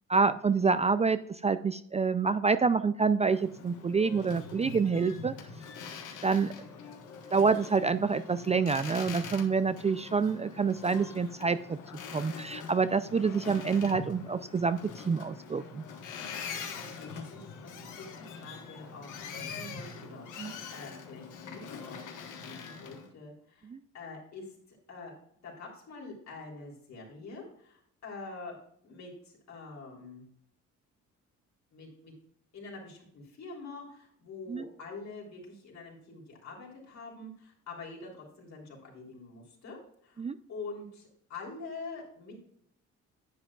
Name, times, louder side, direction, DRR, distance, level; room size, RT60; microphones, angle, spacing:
voice 1, 0.1-5.3 6.2-6.5 7.3-11.8 12.1-15.8 20.4-20.5 23.7-23.8 34.5-34.7 40.2-40.4, right 5 dB, 20° right, 12 dB, 0.3 m, -27 dB
Boat Water vehicle, 3.3-23.1, left 5 dB, 85° left, 1.4 m, -43 dB
voice 2, 16.9-22.1 22.4-23.7 23.9-25.1 25.4-28.6 28.8-30.3 31.7-32.1 32.5-42.4, left 3 dB, 65° left, -2 dB, 3.4 m, -46 dB
10.5 x 7.8 x 2.4 m, 0.69 s
cardioid pair, 90°, 30 cm